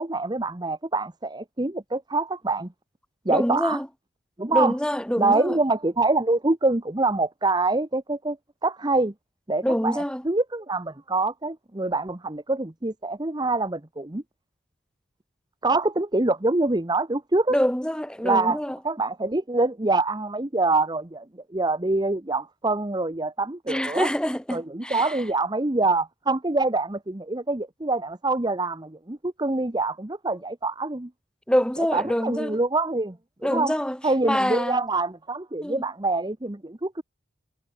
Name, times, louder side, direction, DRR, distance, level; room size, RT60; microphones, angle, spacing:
voice 1, 0.0-2.7 3.2-3.8 4.4-4.7 5.2-8.4 8.6-9.1 9.5-14.2 15.6-17.6 18.2-18.6 18.8-21.2 21.5-24.1 24.5-31.1 31.9-33.2 33.5-33.7 34.0-37.0, right 2 dB, 20° right, 1.0 m, -25 dB
voice 2, 3.3-3.9 4.5-5.6 9.6-10.2 17.5-18.8 23.7-25.2 31.5-32.6 33.4-34.0 34.2-34.8 35.6-35.8, equal, 5° left, 3.0 m, -25 dB
head